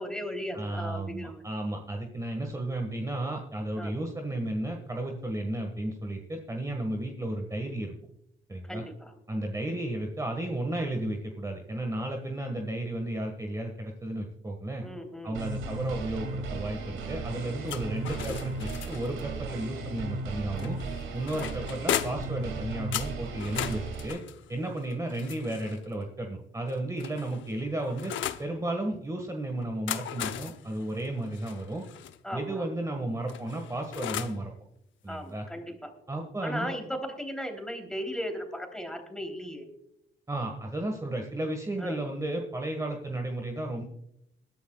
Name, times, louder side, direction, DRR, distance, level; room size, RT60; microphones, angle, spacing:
voice 1, 0.0-1.4 3.8-3.9 8.6-9.1 14.8-15.4 21.4-21.7 32.2-32.6 35.1-35.9 36.4-39.7 41.8-42.0, equal, 5° left, 4 dB, 3.3 m, -37 dB
voice 2, 0.5-7.9 8.5-8.8 9.3-14.8 15.2-20.8 21.1-24.2 24.5-28.1 28.4-31.8 32.3-34.5 35.0-35.5 36.1-36.7 40.3-43.8, right 1 dB, 15° right, 3 dB, 1.6 m, -33 dB
sound 1, 15.3-24.1, right 3 dB, 85° right, 2.5 m, -36 dB
sound 2, 17.7-19.2 20.6-22.4 22.9-25.8 26.7-28.5 29.6-32.2 33.3-34.4, left 10 dB, 75° left, 0.8 m, -37 dB
21.5 x 11.5 x 2.4 m, 0.77 s
cardioid pair, 90°, 20 cm